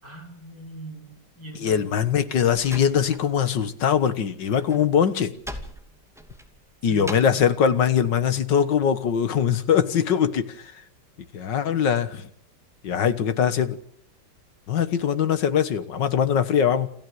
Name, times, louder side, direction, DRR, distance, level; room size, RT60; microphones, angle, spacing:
voice 1, 0.0-1.9 6.8-7.4, right 2 dB, 55° right, 0 dB, 6.7 m, -41 dB
voice 2, 1.6-5.3 6.8-10.7 11.3-12.3 12.8-13.8 14.7-16.9, left 8 dB, 80° left, 12 dB, 2.0 m, -22 dB
Slam, 2.5-3.7 4.0-7.5, equal, ahead, 2.3 m, -41 dB
28.5 x 14.0 x 7.9 m, 0.67 s
omnidirectional pair, 1.9 m